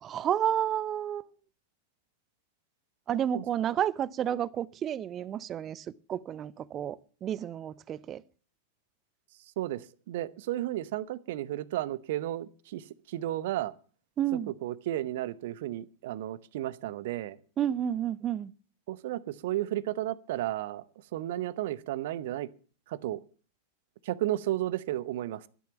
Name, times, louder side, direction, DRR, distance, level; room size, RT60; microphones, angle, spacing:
voice 1, 0.0-1.3 3.1-8.2 14.2-14.5 17.6-18.5, right 10 dB, 30° right, 0.7 m, -31 dB
voice 2, 9.6-13.7 14.6-17.4 18.9-20.8 21.1-22.5 22.9-23.2 24.0-25.5, right 14 dB, 55° right, 0.9 m, -33 dB
12.5 x 10.5 x 7.0 m
figure-of-eight pair, 95°, 0 cm